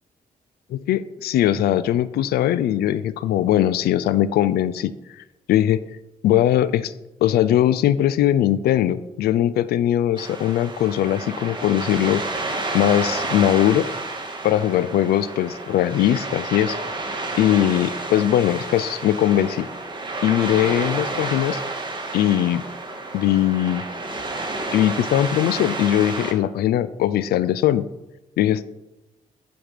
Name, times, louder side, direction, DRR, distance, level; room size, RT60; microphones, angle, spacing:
voice 1, 0.7-5.9 6.2-6.9 7.2-12.2 12.7-13.8 14.4-16.8 17.4-19.7 20.2-21.6 22.1-22.6 23.1-23.8 24.7-27.8 28.4-28.6, left 12 dB, 80° left, 16 dB, 0.4 m, -20 dB
sound 1, 10.2-26.3, right 2 dB, 30° right, 2.1 m, -30 dB
8.9 x 6.0 x 5.1 m, 0.96 s
supercardioid pair, 55°, 16 cm